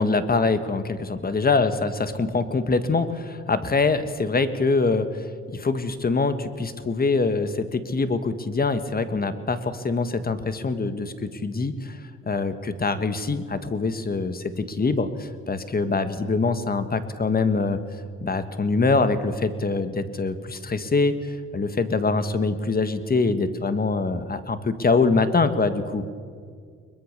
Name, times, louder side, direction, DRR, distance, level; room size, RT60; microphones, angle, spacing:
voice 1, 0.0-5.2 5.5-12.0 12.2-17.8 18.2-26.0, left 3 dB, 30° left, 11 dB, 1.6 m, -24 dB
21.5 x 21.5 x 6.7 m, 2.1 s
cardioid pair, 90°, 30 cm